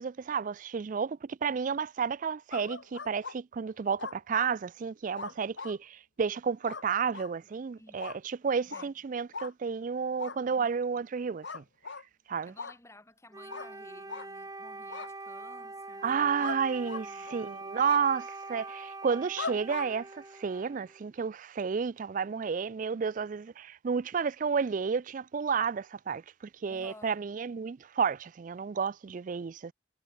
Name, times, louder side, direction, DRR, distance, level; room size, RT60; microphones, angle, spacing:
voice 1, 0.0-11.6 12.3-12.5 16.0-26.2 26.6-29.7, right 6 dB, 40° right, 0.3 m, -31 dB
sound 1, 2.5-3.3 4.0-4.5 5.2-5.8 6.7-6.8 7.1-7.3 8.0-8.2 8.7-8.9 9.3-9.5 10.2-10.4 11.4-12.0 12.6-12.7 13.5-13.7 14.1-14.3 14.9-15.1 16.4-16.6 16.8-17.4 17.8-18.0 19.4-19.9, left 4 dB, 60° left, 1.4 m, -39 dB
voice 2, 7.8-8.2 8.7-8.9 10.5-10.7 12.4-16.6 16.9-17.3 26.7-27.2, left 1 dB, 15° left, 5.1 m, -55 dB
Wind instrument woodwind instrument, 13.3-21.0, right 2 dB, 15° right, 2.0 m, -44 dB
head